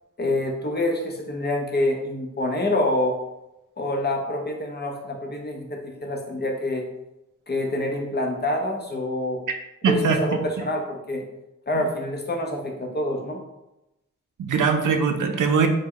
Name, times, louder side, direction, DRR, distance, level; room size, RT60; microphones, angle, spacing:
voice 1, 0.2-3.2 3.8-6.8 7.5-9.4 9.9-11.2 11.7-13.4, left 1 dB, 35° left, 1 dB, 0.5 m, -26 dB
voice 2, 9.8-10.4 14.4-15.7, right 5 dB, 75° right, 5 dB, 0.5 m, -21 dB
3.3 x 2.1 x 3.5 m, 0.93 s
wide cardioid pair, 135°, 31 cm